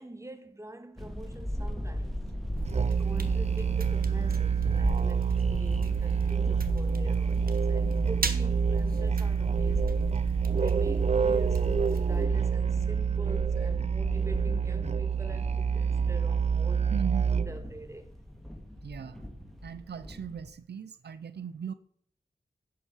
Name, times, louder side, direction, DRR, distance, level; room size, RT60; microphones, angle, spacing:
voice 1, 0.0-2.2 3.0-10.0 10.5-18.1, right 1 dB, 15° right, 1.6 m, -45 dB
Inside driving car in rain w windshield wipers, 1.0-20.5, left 1 dB, ahead, 2.3 m, -39 dB
Musical instrument, 2.6-17.7, right 6 dB, 40° right, 0.6 m, -27 dB
sound 1, 2.6-12.3, right 4 dB, 60° right, 1.1 m, -38 dB
voice 2, 16.9-17.3 18.8-19.2 19.6-21.7, right 7 dB, 85° right, 0.6 m, -38 dB
10.0 x 7.5 x 6.7 m
wide cardioid pair, 55°, 17 cm